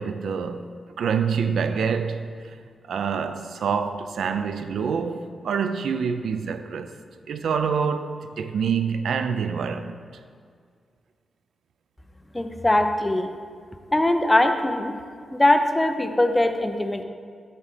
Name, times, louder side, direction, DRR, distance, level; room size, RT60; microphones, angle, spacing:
voice 1, 0.0-2.6 2.9-6.9 7.3-8.1 8.4-10.0, right 6 dB, 80° right, 0.4 m, -26 dB
voice 2, 12.3-13.3 13.9-14.9 15.3-17.0, left 1 dB, 10° left, 0.4 m, -21 dB
7.1 x 4.2 x 6.6 m
wide cardioid pair, 175°, 0 cm